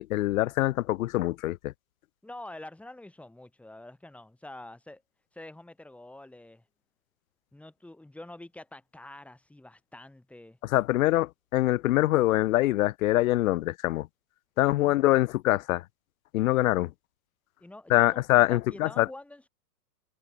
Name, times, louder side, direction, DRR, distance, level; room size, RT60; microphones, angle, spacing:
voice 1, 0.0-1.7 10.6-14.1 14.6-15.8 16.3-16.9 17.9-19.1, left 16 dB, 55° left, 0.7 m, -24 dB
voice 2, 2.2-5.0 5.3-6.6 7.5-10.6 14.6-15.0 17.6-19.5, left 1 dB, 5° left, 3.0 m, -46 dB
hypercardioid pair, 140°, 50 cm